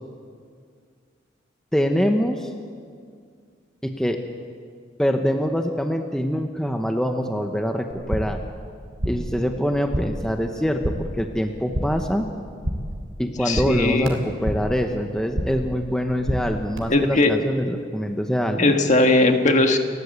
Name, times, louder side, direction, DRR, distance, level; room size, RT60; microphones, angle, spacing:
voice 1, 1.7-2.5 3.8-4.2 5.0-8.4 9.0-12.3 13.2-18.7, equal, 5° left, 4 dB, 0.9 m, -24 dB
sound 1, 7.9-8.5 8.7-9.4 9.6-10.3 10.6-11.2 11.5-12.1 12.4-13.0 13.3-14.8 15.1-15.7 16.0-16.8, equal, 80° right, 3.1 m, -29 dB
voice 2, 13.4-14.1 16.9-17.4 18.6-19.8, left 2 dB, 40° left, 5 dB, 1.6 m, -18 dB
30.0 x 13.5 x 8.3 m, 2.1 s
head